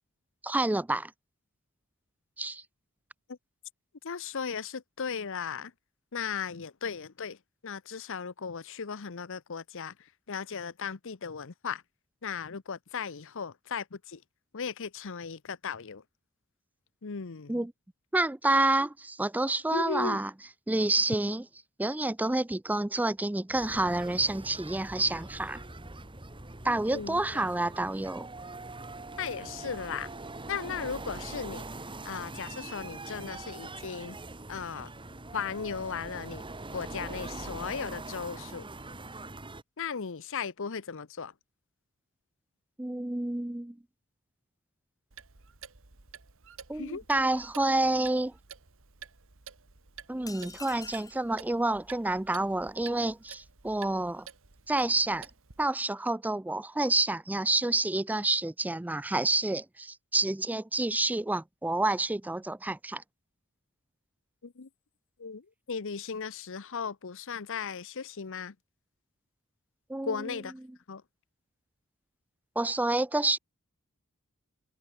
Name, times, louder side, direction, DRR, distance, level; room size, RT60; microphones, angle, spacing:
voice 1, 0.4-1.1 2.4-2.6 17.5-17.7 18.1-20.3 20.7-21.4 21.8-25.6 26.6-28.3 42.8-43.8 46.7-48.3 50.1-54.3 54.7-55.3 55.6-63.0 69.9-70.1 72.6-73.4, right 2 dB, 5° right, 0.4 m, -28 dB
voice 2, 4.0-5.7 6.1-7.4 7.6-11.8 12.2-14.2 14.5-16.0 17.0-17.6 19.7-20.2 26.6-27.4 29.2-30.1 30.5-31.7 32.0-34.2 34.5-34.9 35.3-36.4 36.7-38.7 39.8-41.3 46.7-47.0 64.4-64.7 65.2-68.5 70.0-70.6 70.9-71.0, left 6 dB, 65° left, 0.8 m, -36 dB
sound 1, 23.5-39.6, right 2 dB, 25° right, 2.0 m, -43 dB
Clock, 45.1-55.7, right 7 dB, 65° right, 1.9 m, -51 dB
sound 2, 50.3-51.3, left 4 dB, 15° left, 3.3 m, -45 dB
head